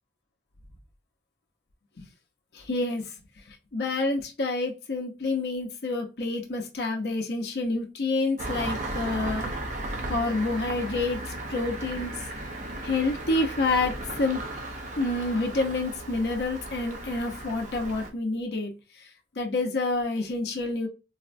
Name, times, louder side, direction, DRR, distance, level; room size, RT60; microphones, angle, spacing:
voice 1, 2.5-3.1 3.5-9.5 10.1-12.1 12.8-13.9 14.2-14.4 15.0-18.7 19.0-19.1 19.4-20.9, left 2 dB, 70° left, 2 dB, 0.6 m, -28 dB
Engine starting, 8.4-18.1, right 1 dB, 45° right, 0.7 m, -35 dB
4.0 x 2.1 x 2.4 m, 0.29 s
head